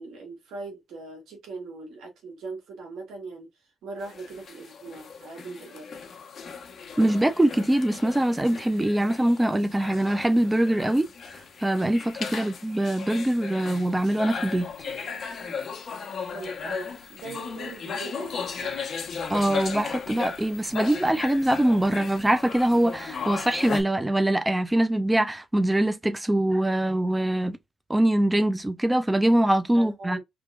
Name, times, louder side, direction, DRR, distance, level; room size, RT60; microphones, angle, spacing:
voice 1, 0.0-3.5 3.8-5.9 12.3-12.5 16.2-18.8 29.7-30.2, right 3 dB, 80° right, 1.8 m, -40 dB
sound 1, 4.0-23.8, left 5 dB, 50° left, 1.0 m, -36 dB
voice 2, 7.0-11.1 11.6-14.7 19.3-27.6 27.9-30.2, right 1 dB, 10° right, 0.5 m, -23 dB
3.6 x 3.0 x 2.3 m
cardioid pair, 90°, 0 cm